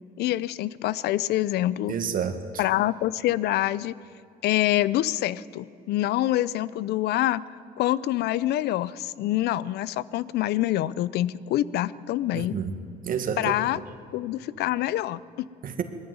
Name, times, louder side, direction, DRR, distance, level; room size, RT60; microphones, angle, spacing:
voice 1, 0.2-1.9 2.6-3.9 4.4-7.4 7.8-12.6 13.4-13.8 14.1-15.5, left 14 dB, 75° left, 19 dB, 0.6 m, -26 dB
voice 2, 1.9-2.6 12.3-12.7 13.0-13.5 15.6-15.8, right 7 dB, 55° right, 8 dB, 1.8 m, -29 dB
20.5 x 14.0 x 9.6 m, 2.6 s
cardioid pair, 110°, 17 cm